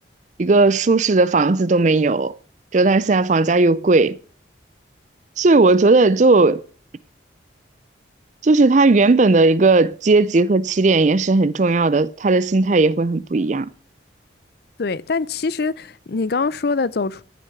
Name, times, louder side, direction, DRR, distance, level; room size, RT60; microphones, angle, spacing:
voice 1, 0.4-2.4 2.7-4.2 5.4-6.6 8.4-13.7, right 3 dB, 40° right, 0.5 m, -16 dB
voice 2, 14.8-17.2, left 4 dB, 55° left, 0.5 m, -23 dB
14.0 x 6.0 x 5.9 m
head